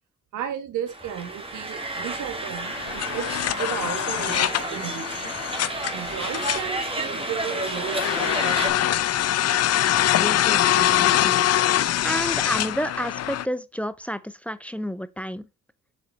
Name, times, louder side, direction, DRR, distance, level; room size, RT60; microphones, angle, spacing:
voice 1, 0.3-3.3 3.6-5.3 5.9-9.0 9.8-9.9, right 9 dB, 85° right, 1.5 m, -34 dB
sound 1, 0.9-8.7, right 2 dB, 20° right, 1.8 m, -31 dB
sound 2, 2.6-13.5, left 12 dB, 55° left, 0.6 m, -24 dB
voice 2, 10.2-11.4 12.0-15.4, equal, 5° left, 0.6 m, -30 dB
7.9 x 4.8 x 4.0 m
cardioid pair, 90°, 30 cm